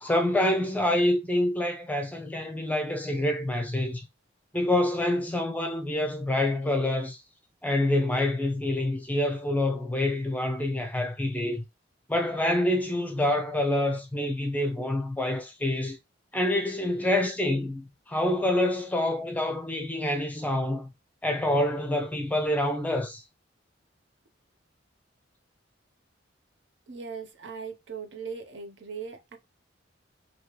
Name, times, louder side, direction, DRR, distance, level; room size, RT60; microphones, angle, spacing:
voice 1, 0.0-4.0 4.5-7.2 7.6-11.6 12.1-16.0 16.3-20.9 21.2-23.2, left 1 dB, 10° left, 0.6 m, -27 dB
voice 2, 26.9-29.4, right 5 dB, 70° right, 0.7 m, -39 dB
3.1 x 2.9 x 2.9 m
head